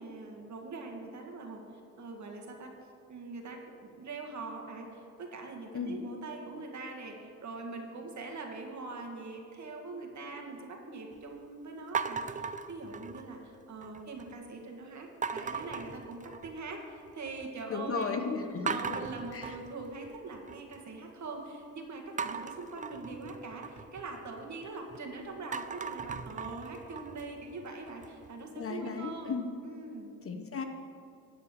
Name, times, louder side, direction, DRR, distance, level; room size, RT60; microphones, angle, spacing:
voice 1, 0.0-1.6 2.0-2.7 3.1-18.2 18.6-29.3 29.6-30.1, right 3 dB, 55° right, 1 dB, 1.8 m, -42 dB
sound 1, 11.9-13.4 13.8-14.3 15.2-16.7 17.1-17.6 18.0-18.1 18.7-20.8 22.2-25.0 25.4-28.3, right 6 dB, 25° right, 0.4 m, -38 dB
voice 2, 17.7-19.0 19.3-19.6 28.6-29.5 30.2-30.6, left 5 dB, 40° left, 5 dB, 1.0 m, -35 dB
12.5 x 4.3 x 8.2 m, 2.5 s
cardioid pair, 85°, 35 cm